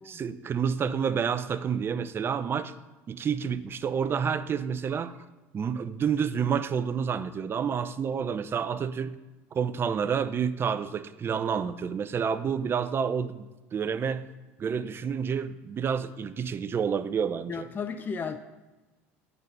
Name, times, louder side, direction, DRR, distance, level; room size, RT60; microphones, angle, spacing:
voice 1, 0.0-2.7 3.1-5.1 5.5-9.2 9.5-14.3 14.6-17.7, right 7 dB, 35° right, 13 dB, 0.5 m, -29 dB
voice 2, 17.5-18.4, left 6 dB, 25° left, 8 dB, 0.5 m, -34 dB
8.6 x 4.0 x 5.4 m, 1.1 s
hypercardioid pair, 85°, 7 cm